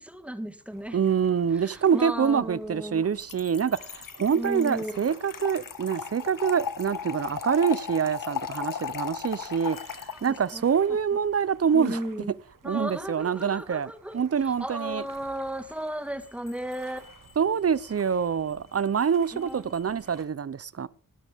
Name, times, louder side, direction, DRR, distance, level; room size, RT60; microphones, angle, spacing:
voice 1, 0.0-1.0 1.5-3.0 4.3-5.1 10.5-10.6 11.7-12.3 12.6-17.0 19.3-19.7, equal, 5° right, 1.7 m, -35 dB
sound 1, 0.7-20.2, right 5 dB, 75° right, 1.9 m, -54 dB
voice 2, 0.9-12.0 12.6-15.0 17.4-20.9, right 7 dB, 45° right, 0.7 m, -26 dB
Trickle dribble / Fill (with liquid), 3.2-10.6, left 7 dB, 80° left, 1.3 m, -36 dB
sound 2, 3.4-4.8 9.7-11.7 16.2-20.2, left 6 dB, 20° left, 3.1 m, -58 dB
18.0 x 12.5 x 3.5 m
wide cardioid pair, 85°, 33 cm